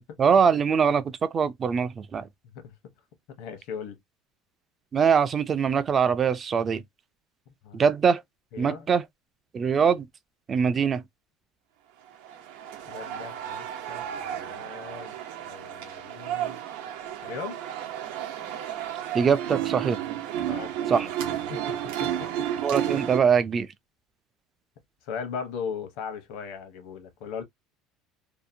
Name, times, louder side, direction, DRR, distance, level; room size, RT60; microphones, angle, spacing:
voice 1, 0.0-2.3 4.9-6.8 7.7-8.2 8.6-9.0 9.5-10.1 10.5-11.0 19.1-20.0 20.9-21.1 22.6-23.7, right 6 dB, 25° right, 0.3 m, -23 dB
voice 2, 2.4-2.7 3.4-4.0 7.6-7.8 8.5-8.9 12.8-15.2 15.5-16.6 17.2-17.6 20.5-22.3 25.0-27.4, left 6 dB, 70° left, 0.8 m, -38 dB
sound 1, 12.1-23.2, right 10 dB, 85° right, 0.7 m, -32 dB
2.7 x 2.1 x 2.5 m
cardioid pair, 150°, 0 cm